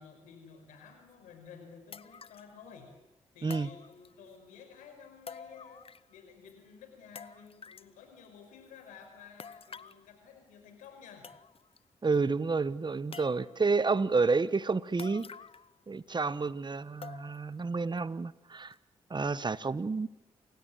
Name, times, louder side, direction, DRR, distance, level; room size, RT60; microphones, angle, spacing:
voice 1, 0.0-2.9 3.3-11.3 14.1-14.5, left 6 dB, 85° left, 6 dB, 5.2 m, -53 dB
sound 1, 1.1-1.2 1.9-2.5 3.5-4.4 5.3-6.2 6.5-6.6 7.2-7.9 9.4-10.0 10.8-10.9 11.2-11.8 12.1-12.2 13.1-13.7 15.0-15.8 16.1-16.2 17.0-17.5 18.0-18.1 18.7-18.8, left 6 dB, 50° left, 0.9 m, -48 dB
voice 2, 12.0-15.3 15.9-18.7 19.1-20.1, right 4 dB, 35° right, 18 dB, 1.2 m, -30 dB
28.5 x 16.5 x 9.3 m, 0.95 s
supercardioid pair, 45°, 13 cm